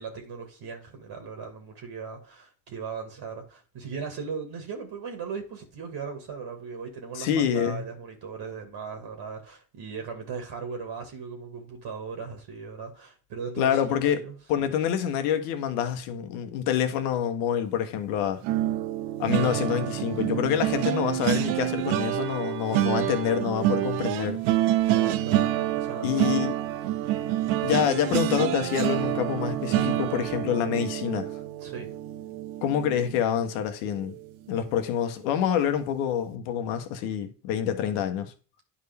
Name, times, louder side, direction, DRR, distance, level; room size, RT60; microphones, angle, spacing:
voice 1, 0.0-14.4 24.9-26.3 31.6-31.9, right 5 dB, 55° right, 1.9 m, -38 dB
voice 2, 7.1-7.8 13.6-14.2 14.5-18.4 19.2-24.4 26.0-26.6 27.6-31.3 32.6-34.1 34.5-38.3, left 9 dB, 75° left, 1.2 m, -27 dB
sound 1, 18.4-33.6 34.0-34.2 34.5-34.7, right 13 dB, 75° right, 0.8 m, -27 dB
10.0 x 4.8 x 3.4 m
hypercardioid pair, 55°, 48 cm